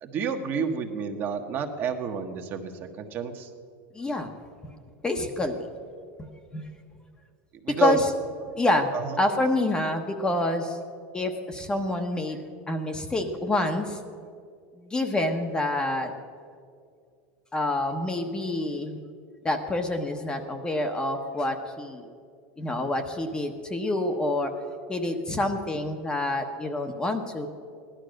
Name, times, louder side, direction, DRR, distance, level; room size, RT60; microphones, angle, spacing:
voice 1, 0.0-2.7 3.0-3.5 7.6-8.0 8.9-9.1, right 7 dB, 35° right, 4 dB, 1.4 m, -29 dB
voice 2, 3.9-4.3 5.0-5.6 6.2-6.7 7.7-8.1 8.6-8.9 9.2-10.8 11.1-12.4 12.7-14.0 14.8-16.1 17.5-19.0 19.4-22.1 22.6-24.5 24.9-27.5, left 2 dB, 15° left, 5 dB, 1.0 m, -27 dB
16.0 x 11.5 x 6.5 m, 2.2 s
supercardioid pair, 145°, 6 cm